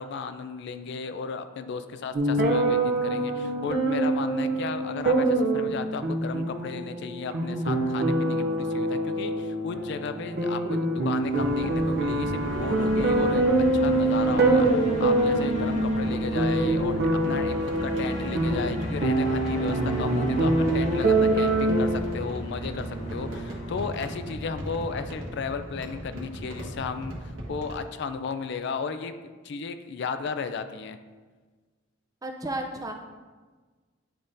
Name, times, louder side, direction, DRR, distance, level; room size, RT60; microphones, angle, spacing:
voice 1, 0.0-13.4 13.7-27.1 27.5-29.1 29.4-31.0, left 5 dB, 60° left, 10 dB, 0.4 m, -34 dB
sound 1, 2.1-22.0, right 2 dB, 55° right, 0.7 m, -25 dB
sound 2, 11.1-25.3, equal, 40° left, 1.4 m, -35 dB
sound 3, 11.2-27.9, right 1 dB, 80° right, 1.2 m, -39 dB
voice 2, 32.2-32.9, right 1 dB, 20° right, 3 dB, 0.5 m, -32 dB
10.0 x 3.7 x 2.6 m, 1.4 s
head